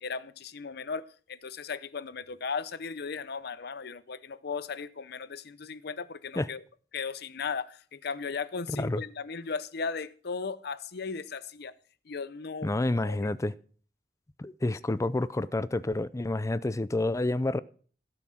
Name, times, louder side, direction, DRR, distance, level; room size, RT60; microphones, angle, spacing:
voice 1, 0.0-6.6 6.9-11.7 12.0-12.7 13.1-13.3, left 5 dB, 65° left, 0.7 m, -36 dB
voice 2, 12.6-13.5 14.4-17.6, left 2 dB, 15° left, 0.4 m, -29 dB
16.0 x 5.8 x 6.2 m
head